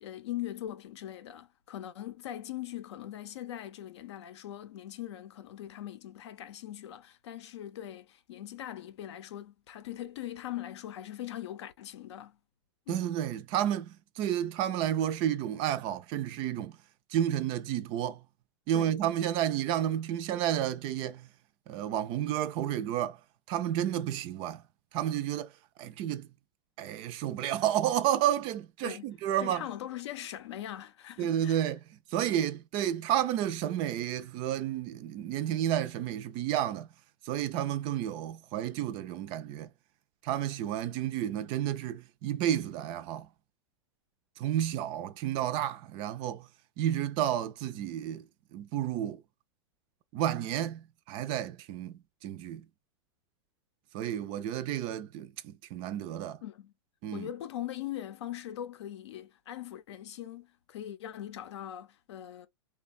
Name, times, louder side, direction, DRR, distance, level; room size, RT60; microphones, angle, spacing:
voice 1, 0.0-12.4 12.9-13.1 18.7-19.0 28.8-29.0 29.4-31.6 56.4-56.7 57.1-62.5, left 12 dB, 75° left, 0.6 m, -41 dB
voice 2, 12.9-16.7 17.1-18.2 18.7-21.3 21.7-23.2 23.5-24.6 24.9-25.5 25.8-26.3 26.8-29.6 31.2-31.8 32.1-36.9 37.2-39.7 40.2-43.3 44.4-46.5 46.8-48.2 48.5-49.2 50.1-51.9 52.2-52.6 53.9-56.4 57.0-57.3, right 11 dB, 35° right, 0.4 m, -31 dB
3.3 x 2.2 x 2.4 m
hypercardioid pair, 135°, 15 cm